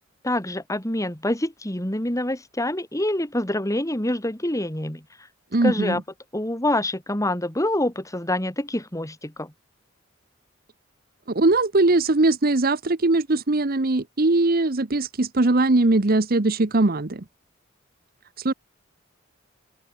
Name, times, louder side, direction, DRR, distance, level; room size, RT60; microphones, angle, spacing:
voice 1, 0.2-5.0 5.6-6.0 6.3-9.5, left 1 dB, 15° left, 2.9 m, -26 dB
voice 2, 5.5-6.0 11.3-17.2 18.4-18.5, right 2 dB, 50° right, 1.0 m, -20 dB
open air
head